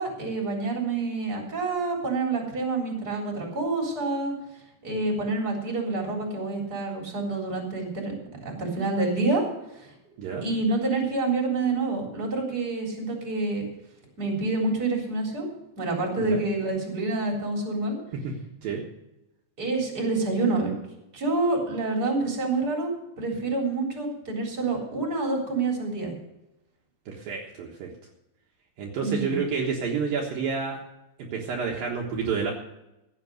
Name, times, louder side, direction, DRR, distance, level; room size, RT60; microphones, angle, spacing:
voice 1, 0.0-4.3 4.8-9.4 9.7-9.9 10.4-13.7 14.2-15.5 15.8-18.0 19.6-20.8 21.1-22.9 23.2-26.1 29.0-29.3, right 3 dB, 25° right, 0 dB, 4.0 m, -27 dB
voice 2, 27.1-27.9 28.8-30.8 31.2-32.5, right 5 dB, 65° right, -1 dB, 3.0 m, -29 dB
15.5 x 8.9 x 6.4 m, 0.92 s
omnidirectional pair, 4.5 m